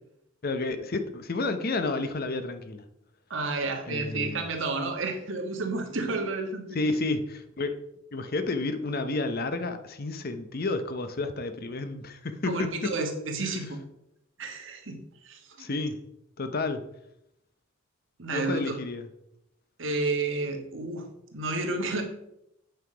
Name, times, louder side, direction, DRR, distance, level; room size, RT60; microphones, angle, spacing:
voice 1, 0.4-2.8 3.9-4.5 6.7-7.8 8.1-12.9 13.4-13.6 15.6-16.0 16.4-16.8 18.3-19.1, left 3 dB, 45° left, 9 dB, 0.7 m, -31 dB
voice 2, 3.3-6.8 12.4-13.8 14.4-15.7 18.2-18.8 19.8-21.1 21.3-22.0, right 3 dB, 65° right, 3 dB, 1.5 m, -31 dB
8.6 x 5.7 x 5.0 m, 0.82 s
head